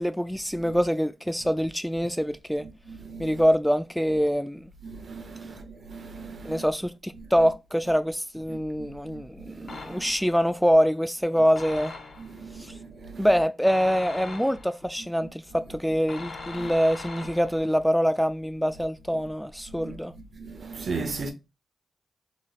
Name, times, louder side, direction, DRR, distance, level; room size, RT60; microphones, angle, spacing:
voice 1, 0.0-2.6 3.2-4.7 6.4-11.9 12.6-12.7 13.2-20.1, equal, ahead, 0.3 m, -25 dB
voice 2, 2.6-3.4 4.8-6.7 7.2-7.3 8.5-10.1 12.2-13.3 15.2-15.3 16.6-16.7 19.7-20.0 20.4-21.3, right 4 dB, 60° right, 0.8 m, -38 dB
sound 1, 9.7-10.4 11.6-12.5 13.7-14.9 16.1-17.7, left 3 dB, 65° left, 0.8 m, -41 dB
4.0 x 3.1 x 2.4 m
cardioid pair, 60°, 0 cm